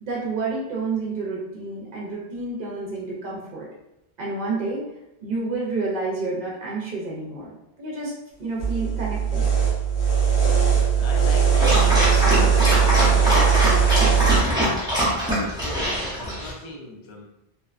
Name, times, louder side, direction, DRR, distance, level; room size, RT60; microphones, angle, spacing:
voice 1, 0.0-3.7 4.2-4.9 5.2-7.5 7.8-8.1 8.4-9.5, right 3 dB, 60° right, -4 dB, 0.7 m, -29 dB
sound 1, 8.6-14.4, right 7 dB, 85° left, 1.0 m, -19 dB
voice 2, 10.9-14.2 15.2-17.2, left 1 dB, 50° left, -1 dB, 0.3 m, -39 dB
Dog, 11.5-16.5, equal, 5° right, 0.6 m, -23 dB
2.7 x 2.1 x 2.3 m, 0.88 s
omnidirectional pair, 1.1 m